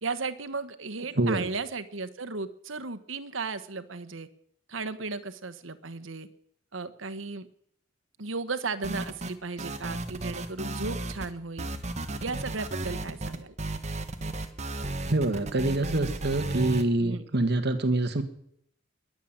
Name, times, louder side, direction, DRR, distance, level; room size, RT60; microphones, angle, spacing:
voice 1, 0.0-4.3 4.7-6.3 6.7-7.5 8.2-11.7 12.2-13.5 17.0-17.2, right 4 dB, 80° right, 12 dB, 1.2 m, -35 dB
sound 1, 8.8-9.3 9.6-11.3 11.6-16.8, right 2 dB, 35° right, 1.3 m, -34 dB
voice 2, 15.1-18.2, right 2 dB, 55° right, 10 dB, 1.5 m, -26 dB
21.5 x 7.5 x 8.9 m, 0.68 s
head